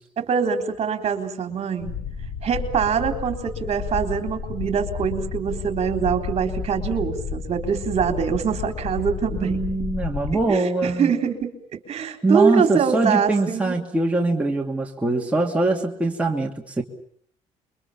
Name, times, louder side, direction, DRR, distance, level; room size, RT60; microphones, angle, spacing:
voice 1, 0.2-1.9 2.4-9.6 10.5-13.8, right 7 dB, 50° right, 6 dB, 3.7 m, -24 dB
sound 1, 1.8-10.5, left 5 dB, 75° left, 6.9 m, -32 dB
voice 2, 9.3-11.1 12.0-16.8, right 2 dB, 10° right, 0 dB, 2.7 m, -23 dB
28.0 x 23.5 x 7.2 m, 0.62 s
cardioid pair, 110°, 13 cm